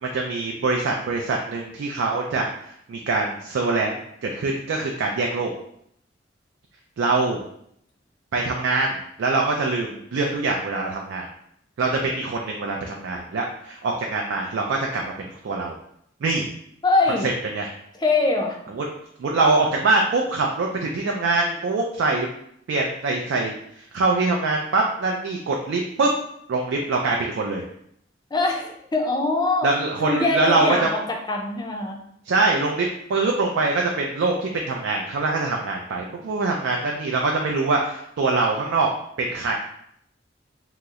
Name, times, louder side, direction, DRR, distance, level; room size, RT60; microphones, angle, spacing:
voice 1, 0.0-5.5 7.0-7.4 8.3-11.3 11.8-15.7 16.2-16.5 17.2-17.7 18.7-18.9 19.2-22.3 22.7-26.1 26.5-27.6 29.6-30.9 32.3-38.9 39.2-39.5, right 3 dB, 75° right, 0 dB, 0.4 m, -24 dB
voice 2, 16.8-17.3 17.9-18.6 28.3-29.7 30.0-31.0 31.3-32.0, left 2 dB, 20° left, 2 dB, 0.4 m, -22 dB
2.8 x 2.0 x 3.5 m, 0.71 s
head